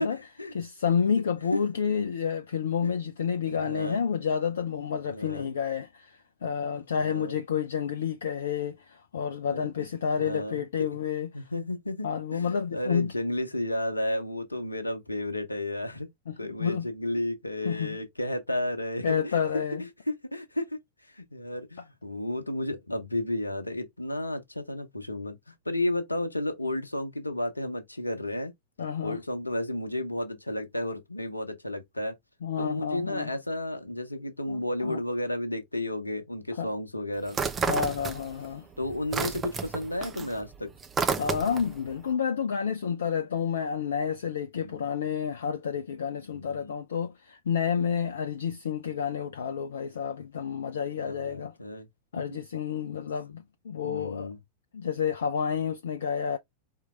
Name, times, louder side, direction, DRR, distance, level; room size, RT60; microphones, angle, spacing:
voice 1, 0.0-0.5 1.5-1.6 2.8-2.9 3.5-4.0 5.1-5.5 6.7-7.4 9.5-9.9 10.2-10.7 11.3-16.1 16.4-19.4 19.8-20.8 21.1-28.5 29.0-32.2 32.6-37.4 38.8-40.7 44.6-44.8 46.2-46.8 51.0-51.9 52.1-52.4 53.8-54.4, left 1 dB, 85° left, 0.8 m, -32 dB
voice 2, 0.5-11.3 12.0-13.1 16.3-16.9 17.6-18.0 19.0-19.8 28.8-29.2 32.4-33.3 34.5-35.0 36.6-36.7 37.7-38.7 41.2-51.5 52.1-54.3 54.7-56.4, left 7 dB, 65° left, 0.4 m, -30 dB
sound 1, 37.3-38.5 38.8-41.8, right 5 dB, 20° right, 0.6 m, -31 dB
4.5 x 3.7 x 2.4 m
figure-of-eight pair, 90°, 0 cm